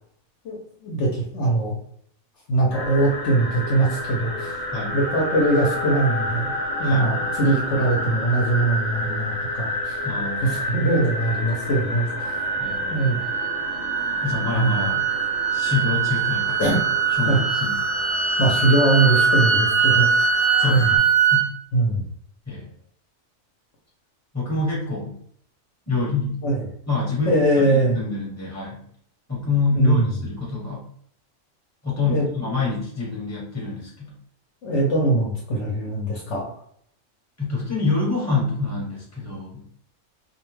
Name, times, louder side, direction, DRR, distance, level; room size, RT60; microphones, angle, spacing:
voice 1, 0.8-1.7 2.5-4.6 4.9-6.5 6.8-10.1 10.4-12.4 12.9-13.2 14.5-14.9 16.6-16.8 17.1-17.4 18.4-20.3 20.6-20.9 21.7-22.0 26.4-26.6 27.2-28.0 29.8-30.1 32.0-32.5 34.6-36.5, right 2 dB, 65° left, -2 dB, 0.9 m, -22 dB
sound 1, 2.7-21.0, left 1 dB, 85° left, 1.1 m, -28 dB
voice 2, 10.0-10.6 12.6-13.3 14.2-15.0 15.5-16.6 17.2-17.8 20.6-21.5 22.5-22.7 24.3-25.2 25.9-26.4 26.9-28.9 29.3-30.8 31.8-34.1 37.4-39.7, left 3 dB, 15° left, -4 dB, 0.9 m, -26 dB
sound 2, 12.3-21.5, right 7 dB, 80° right, 1.0 m, -23 dB
2.5 x 2.1 x 3.1 m, 0.65 s
omnidirectional pair, 1.4 m